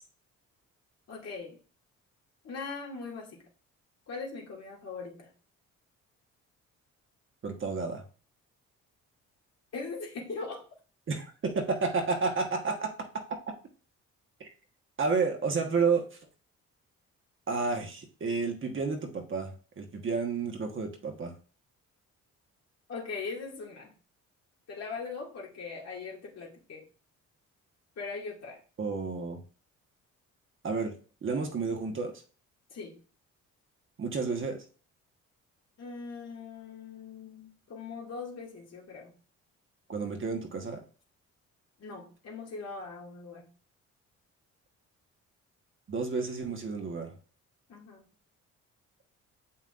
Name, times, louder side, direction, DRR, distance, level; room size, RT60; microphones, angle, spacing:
voice 1, 1.1-1.6 2.4-3.4 4.1-5.3 9.7-10.6 22.9-23.9 24.7-26.8 28.0-28.6 32.7-33.0 35.8-39.1 41.8-43.5 47.7-48.1, left 4 dB, 55° left, -1 dB, 2.2 m, -40 dB
voice 2, 7.4-8.0 11.1-12.9 14.4-14.5 15.0-16.1 17.5-19.5 19.8-21.3 28.8-29.4 30.6-30.9 31.2-32.1 34.0-34.6 39.9-40.8 45.9-47.1, right 4 dB, 40° right, 3 dB, 1.3 m, -30 dB
7.2 x 5.7 x 2.5 m, 0.38 s
cardioid pair, 90°, 30 cm